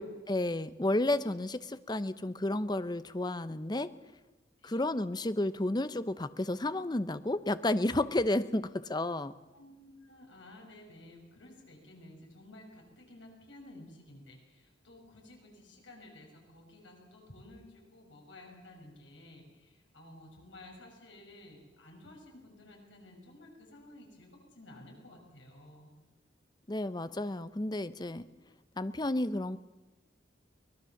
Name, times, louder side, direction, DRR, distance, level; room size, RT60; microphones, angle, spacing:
voice 1, 0.0-3.9 4.6-9.3 26.7-28.3 28.8-29.6, left 1 dB, 20° left, 14 dB, 0.7 m, -32 dB
voice 2, 9.1-26.0, left 1 dB, 85° left, 1 dB, 6.0 m, -53 dB
23.5 x 19.5 x 7.2 m, 1.1 s
head